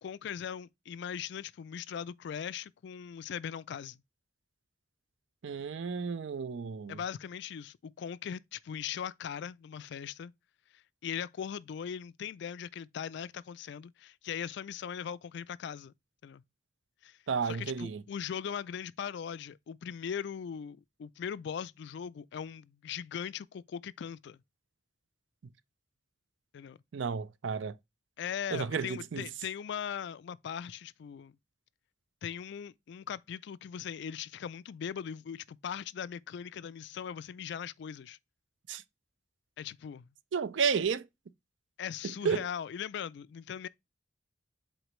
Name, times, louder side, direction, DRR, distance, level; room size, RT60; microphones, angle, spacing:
voice 1, 0.0-4.0 6.9-10.3 10.7-15.9 16.2-16.4 17.0-17.2 17.4-24.4 26.5-26.8 28.2-31.4 32.2-38.2 39.6-40.1 41.8-43.7, left 8 dB, 65° left, 0.3 m, -39 dB
voice 2, 5.4-7.0 17.3-18.0 26.9-27.8 28.5-29.3 38.7-38.8 40.3-41.1 42.2-42.4, right 6 dB, 75° right, 0.5 m, -32 dB
7.9 x 4.3 x 3.1 m
head